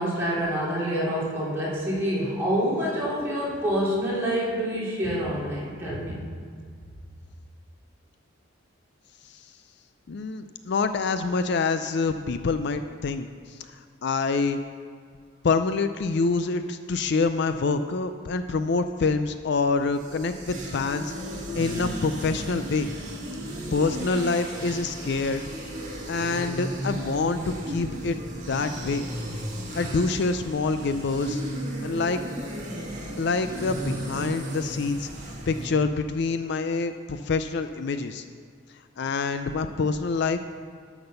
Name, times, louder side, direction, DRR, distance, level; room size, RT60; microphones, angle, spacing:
voice 1, 0.0-6.2, equal, 10° right, -8 dB, 3.2 m, -27 dB
voice 2, 10.1-14.6 15.4-21.1 21.5-22.9 23.7-25.4 26.1-28.2 28.5-29.1 29.7-31.4 31.8-32.2 33.2-35.1 35.5-38.2 39.0-40.4, left 4 dB, 55° left, 9 dB, 0.4 m, -26 dB
sound 1, 19.7-35.7, equal, 40° right, 1.9 m, -34 dB
12.0 x 6.0 x 6.8 m, 2.1 s
head